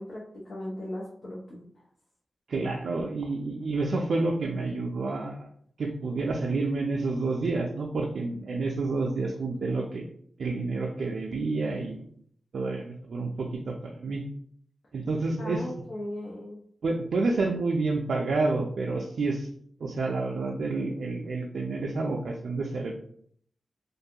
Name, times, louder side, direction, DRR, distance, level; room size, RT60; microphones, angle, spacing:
voice 1, 0.0-1.6 15.4-16.6, left 1 dB, 70° left, -6 dB, 0.7 m, -37 dB
voice 2, 2.5-5.5 5.8-10.1 10.4-12.1 12.5-14.2 14.9-15.6 16.8-19.5 19.8-22.9, right 3 dB, 75° right, 0 dB, 0.3 m, -29 dB
2.4 x 2.2 x 2.7 m, 0.63 s
wide cardioid pair, 85°, 0 cm